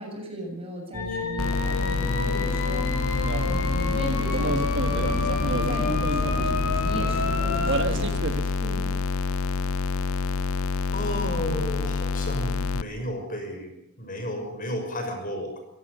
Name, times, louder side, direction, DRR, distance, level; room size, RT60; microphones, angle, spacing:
voice 1, 0.0-9.0, equal, 25° right, 2 dB, 7.2 m, -37 dB
sound 1, 0.9-7.9, left 2 dB, 90° left, 4.9 m, -29 dB
sound 2, 1.4-12.8, left 4 dB, 70° left, 0.7 m, -27 dB
sound 3, 3.1-8.4, right 2 dB, 55° right, 1.5 m, -31 dB
voice 2, 10.9-13.7 14.0-15.6, equal, 40° left, 5 dB, 6.3 m, -32 dB
25.0 x 18.0 x 6.9 m, 0.79 s
head